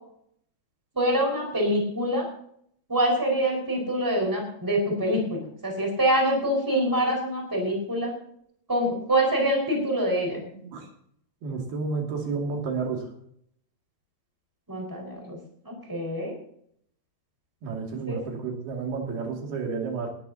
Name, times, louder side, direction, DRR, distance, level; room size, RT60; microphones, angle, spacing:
voice 1, 0.9-2.3 2.9-8.1 8.7-10.4 14.7-15.4 15.6-16.3 18.1-18.2, right 1 dB, 5° right, 0 dB, 4.8 m, -25 dB
voice 2, 11.4-13.0 17.6-20.1, right 4 dB, 80° right, 0 dB, 4.5 m, -31 dB
19.0 x 13.5 x 2.9 m, 0.67 s
omnidirectional pair, 4.4 m